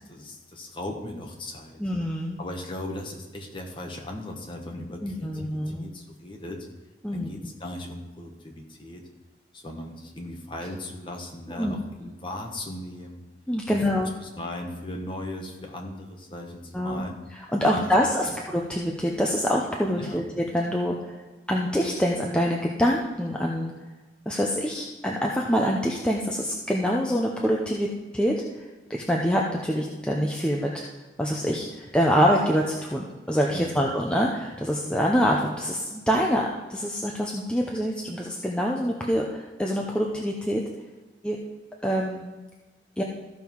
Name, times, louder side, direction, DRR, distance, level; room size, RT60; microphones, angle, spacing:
voice 1, 0.1-1.8 2.4-6.7 7.1-9.0 9.5-13.2 13.7-17.1 17.7-17.9 18.2-18.3 19.9-20.2 33.5-33.9, left 1 dB, 25° left, 1 dB, 1.4 m, -38 dB
voice 2, 1.8-2.4 5.0-5.9 7.0-7.3 11.6-11.7 13.5-14.1 16.7-17.0 17.5-21.2 21.5-23.7 24.3-28.3 28.9-30.8 31.2-40.6 41.2-41.4 41.8-42.2 43.0-43.1, equal, 5° left, -1 dB, 0.6 m, -25 dB
14.0 x 5.5 x 4.6 m, 1.2 s
head